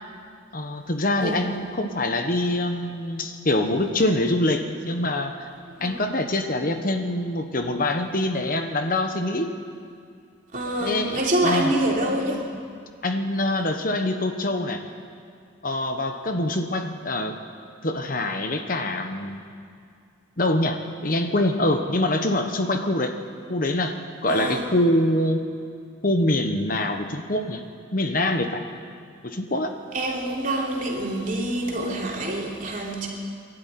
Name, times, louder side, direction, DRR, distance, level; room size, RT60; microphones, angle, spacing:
voice 1, 0.5-5.5 5.8-9.5 10.8-11.7 13.0-14.8 15.6-17.4 17.8-19.4 20.4-20.8 21.0-23.1 23.5-23.9 24.2-25.4 26.0-27.6 27.9-28.6 29.2-29.7, left 1 dB, 45° left, 6 dB, 1.2 m, -24 dB
voice 2, 5.7-6.1 10.5-12.5 24.3-24.6 29.9-33.1, right 1 dB, 40° right, -2 dB, 3.2 m, -26 dB
23.5 x 12.0 x 9.5 m, 2.3 s
head